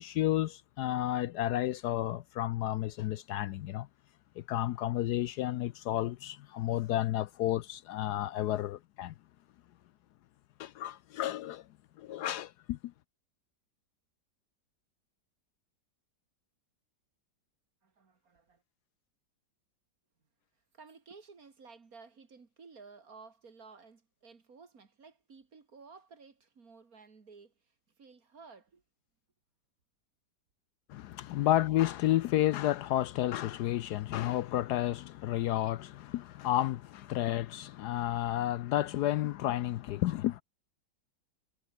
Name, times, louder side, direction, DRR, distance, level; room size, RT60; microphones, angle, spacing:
voice 1, 0.0-3.9 4.4-9.1 10.6-11.7 12.0-12.9 30.9-40.4, left 13 dB, 75° left, 1.0 m, -31 dB
voice 2, 17.8-18.6 20.7-28.8, right 4 dB, 50° right, 2.7 m, -55 dB
omnidirectional pair, 1.9 m